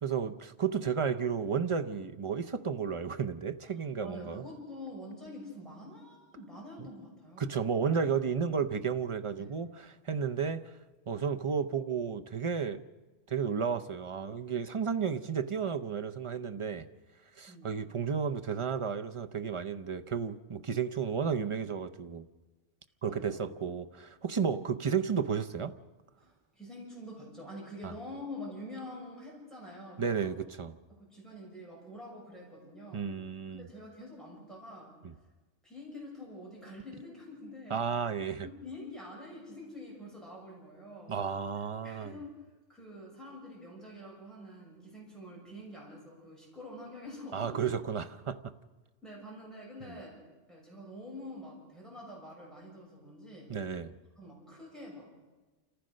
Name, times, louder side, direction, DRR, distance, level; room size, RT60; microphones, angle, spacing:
voice 1, 0.0-4.4 6.8-6.9 7.4-10.7 11.1-12.9 13.3-16.9 17.4-22.3 23.0-25.7 27.8-27.9 30.0-30.8 32.9-33.7 35.0-35.1 37.7-38.5 41.1-42.1 47.3-48.4 49.9-50.0 53.5-53.9, right 6 dB, 35° right, 0.6 m, -32 dB
voice 2, 3.7-7.5 9.3-9.6 17.5-17.7 23.0-23.5 26.2-30.3 30.9-33.1 33.5-35.0 35.6-37.8 38.4-41.2 41.8-42.3 42.7-47.6 49.0-50.2 50.5-53.5 54.2-55.1, left 1 dB, ahead, 6.5 m, -46 dB
28.0 x 15.0 x 6.4 m
omnidirectional pair, 1.2 m